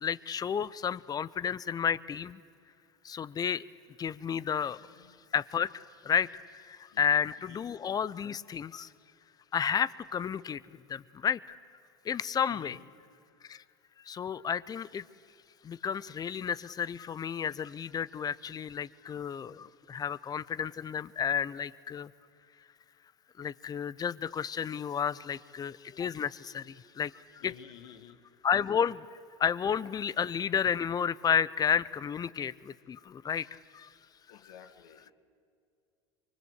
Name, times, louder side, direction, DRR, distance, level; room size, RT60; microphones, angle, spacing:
voice 1, 0.0-2.4 3.0-3.6 4.0-4.9 5.3-8.9 9.5-11.6 12.0-12.8 13.5-13.6 14.1-15.0 15.6-22.1 23.4-27.5 28.4-29.1 29.4-33.9, left 7 dB, 30° left, 18 dB, 0.7 m, -32 dB
voice 2, 4.7-5.2 6.9-7.6 12.5-12.8 27.4-28.2 34.3-35.1, left 9 dB, 70° left, 6 dB, 2.1 m, -53 dB
24.5 x 24.5 x 8.3 m, 2.3 s
hypercardioid pair, 90°, 13 cm